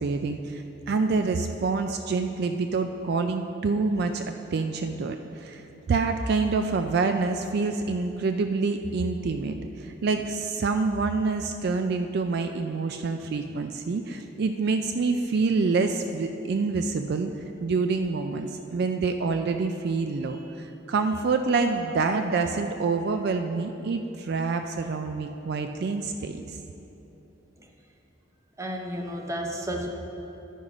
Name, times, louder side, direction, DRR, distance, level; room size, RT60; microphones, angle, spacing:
voice 1, 0.0-17.3 17.6-26.4, right 4 dB, 55° right, 6 dB, 0.4 m, -27 dB
voice 2, 28.6-29.9, equal, 15° right, 2 dB, 0.7 m, -32 dB
11.0 x 5.4 x 4.9 m, 3.0 s
head